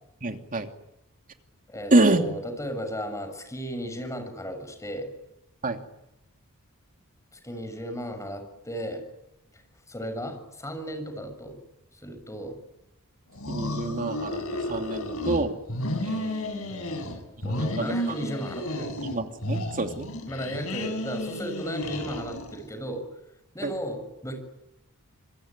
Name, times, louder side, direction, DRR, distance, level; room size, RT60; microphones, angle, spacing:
voice 1, 0.2-0.7 1.9-2.3 5.6-5.8 13.5-15.6 16.0-17.1 17.6-18.2 19.0-20.1 23.6-23.7, right 2 dB, 40° right, 6 dB, 2.8 m, -27 dB
voice 2, 1.7-5.1 7.3-9.0 9.5-9.6 9.9-11.6 12.0-12.6 16.7-18.9 20.3-23.0 23.5-24.4, equal, 15° left, 7 dB, 6.7 m, -35 dB
sound 1, 13.3-15.4 15.7-17.2 17.4-19.2 19.4-22.6, left 1 dB, 70° left, 7.9 m, -32 dB
27.0 x 22.0 x 9.7 m, 0.88 s
head